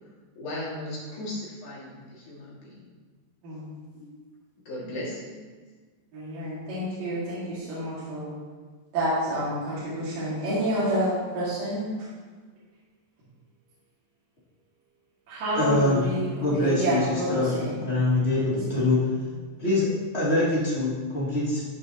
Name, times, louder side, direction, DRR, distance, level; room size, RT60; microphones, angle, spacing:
voice 1, 0.4-2.9 3.9-4.0 4.7-5.4, left 1 dB, 65° left, -6 dB, 3.7 m, -36 dB
voice 2, 6.1-8.3 8.9-11.8 15.3-16.3 16.6-17.7 18.7-19.0, right 1 dB, 80° right, -10 dB, 3.7 m, -28 dB
voice 3, 15.5-16.1 16.4-17.5 17.8-19.1 19.6-21.6, left 2 dB, 20° left, -8 dB, 2.4 m, -24 dB
15.0 x 5.4 x 2.9 m, 1.5 s
omnidirectional pair, 3.9 m